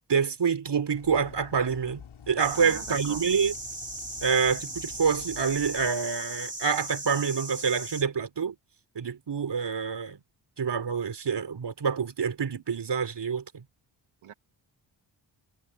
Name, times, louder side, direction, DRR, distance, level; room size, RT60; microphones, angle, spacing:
voice 1, 0.1-3.5 4.2-8.5 9.0-10.2 10.6-13.6, right 6 dB, 55° right, 3.8 m, -27 dB
sound 1, 0.9-5.9, left 7 dB, 75° left, 6.6 m, -48 dB
sound 2, 2.4-8.0, right 2 dB, 15° right, 3.0 m, -38 dB
voice 2, 2.5-3.3 14.2-14.3, right 10 dB, 90° right, 2.6 m, -41 dB
cardioid pair, 55°, 48 cm